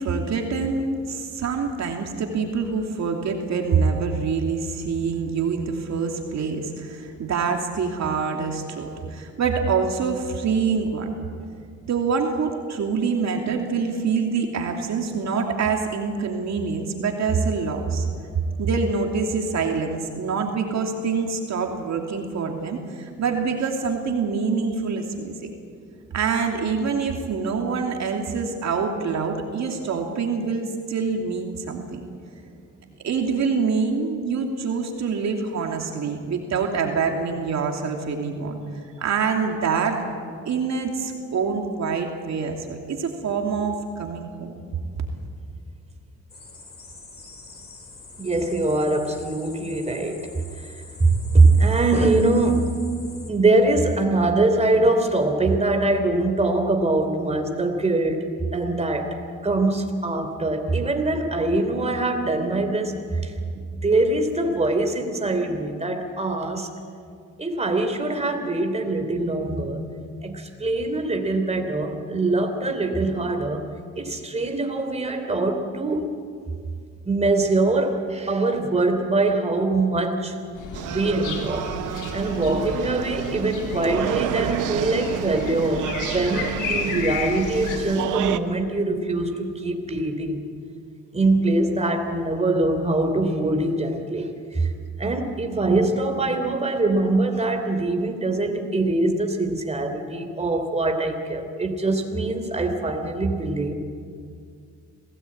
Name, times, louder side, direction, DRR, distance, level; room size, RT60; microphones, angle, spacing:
voice 1, 0.0-11.1 11.9-18.0 18.6-25.5 26.1-32.0 33.0-40.0 40.4-44.5, right 5 dB, 65° right, 2 dB, 2.9 m, -25 dB
sound 1, 46.3-53.3, left 3 dB, 30° left, 3.7 m, -45 dB
voice 2, 48.2-52.8 53.3-59.2 59.4-66.7 67.4-69.8 70.2-73.7 73.9-76.2 77.0-80.4 80.8-81.7 82.1-90.5 91.1-94.7 95.0-103.7, right 2 dB, 20° right, 5 dB, 3.3 m, -23 dB
sound 2, 80.5-87.8, left 5 dB, 85° left, 3.4 m, -33 dB
sound 3, 80.7-88.4, right 11 dB, 85° right, 1.1 m, -30 dB
26.5 x 17.5 x 8.7 m, 2.2 s
cardioid pair, 90°, 30 cm